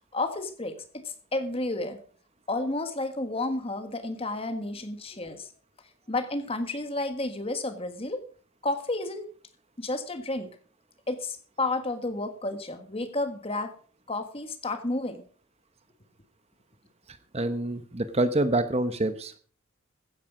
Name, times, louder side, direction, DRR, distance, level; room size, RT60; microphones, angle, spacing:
voice 1, 0.1-2.0 2.5-5.5 6.1-8.2 8.6-9.3 9.8-10.5 11.1-13.7 14.1-15.2, left 2 dB, 25° left, 9 dB, 1.5 m, -31 dB
voice 2, 17.1-19.4, right 2 dB, 30° right, 11 dB, 1.0 m, -27 dB
15.5 x 9.9 x 5.0 m, 0.43 s
head